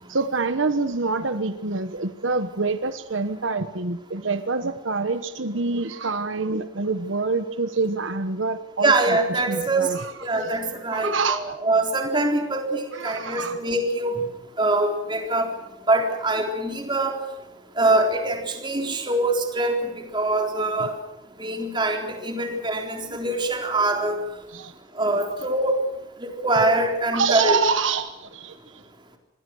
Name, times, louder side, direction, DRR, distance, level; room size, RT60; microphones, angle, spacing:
voice 1, 0.1-9.2 9.5-10.1 10.4-10.6 10.9-11.6 12.9-13.6 20.8-20.9 23.1-23.2 24.5-24.7 27.1-28.8, right 4 dB, 70° right, 10 dB, 1.2 m, -26 dB
voice 2, 8.8-9.9 10.2-14.2 14.6-15.5 15.9-17.2 17.8-19.8 20.1-20.9 21.4-24.2 25.0-25.8 26.2-27.6, right 2 dB, 25° right, 3 dB, 3.9 m, -23 dB
27.0 x 21.0 x 6.4 m, 0.98 s
head